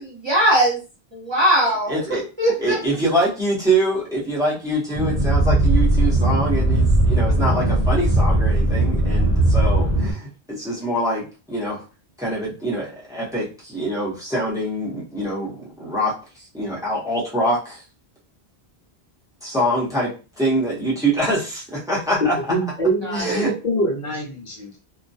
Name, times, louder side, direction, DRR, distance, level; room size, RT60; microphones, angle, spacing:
voice 1, 0.2-0.8 1.1-2.0 2.4-2.8 23.0-23.4, right 1 dB, 30° right, -5 dB, 1.0 m, -19 dB
voice 2, 1.9-2.2 2.6-11.8 12.2-17.8 19.4-22.5 23.1-23.5, right 1 dB, 5° right, -6 dB, 0.8 m, -24 dB
sound 1, 4.9-10.1, right 1 dB, 45° right, 0.5 m, -18 dB
voice 3, 22.5-24.8, right 1 dB, 50° left, -2 dB, 0.8 m, -24 dB
2.3 x 2.1 x 2.6 m, 0.32 s
omnidirectional pair, 1.0 m